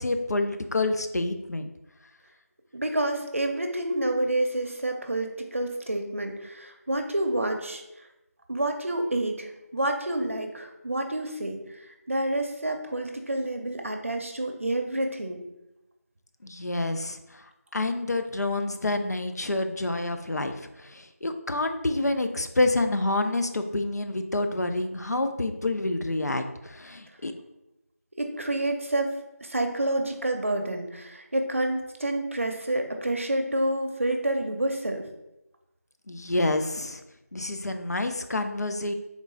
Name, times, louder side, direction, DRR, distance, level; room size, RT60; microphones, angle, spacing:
voice 1, 0.0-1.7 16.4-27.3 36.1-37.0 37.3-38.9, left 2 dB, 80° left, 7 dB, 0.6 m, -28 dB
voice 2, 2.7-7.8 8.5-15.4 28.2-35.0, right 1 dB, 55° right, 4 dB, 0.6 m, -28 dB
3.7 x 3.1 x 3.7 m, 0.92 s
figure-of-eight pair, 180°, 9 cm